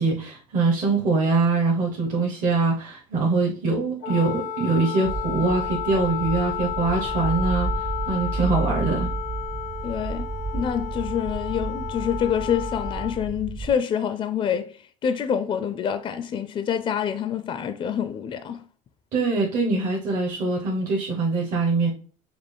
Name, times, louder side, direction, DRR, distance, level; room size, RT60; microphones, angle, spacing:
voice 1, 0.0-9.1 19.1-21.9, right 3 dB, 55° right, 1.1 m, -23 dB
Wind instrument woodwind instrument, 4.0-13.2, left 9 dB, 80° left, 0.7 m, -32 dB
sound 1, 5.0-13.7, right 3 dB, 30° right, 0.4 m, -31 dB
voice 2, 9.8-10.3 10.5-18.6, left 8 dB, 35° left, 0.4 m, -27 dB
4.9 x 2.0 x 3.4 m
supercardioid pair, 100°, 16 cm